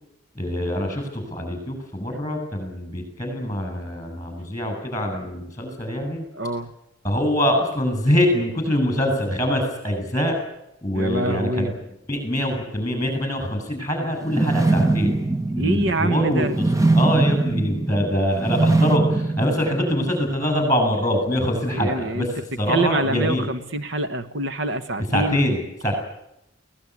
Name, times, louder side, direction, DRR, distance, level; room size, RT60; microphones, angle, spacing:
voice 1, 0.3-6.2 7.0-10.3 10.8-11.8 12.1-15.2 15.6-22.3 22.6-23.5 25.1-25.9, equal, 15° left, 5 dB, 7.8 m, -24 dB
voice 2, 6.3-6.7 10.9-11.7 15.6-16.6 21.7-22.3 22.7-25.4, right 2 dB, 65° right, 11 dB, 1.3 m, -25 dB
sound 1, 14.2-20.3, right 2 dB, 15° right, 1.1 m, -22 dB
23.5 x 18.0 x 9.7 m, 0.83 s
head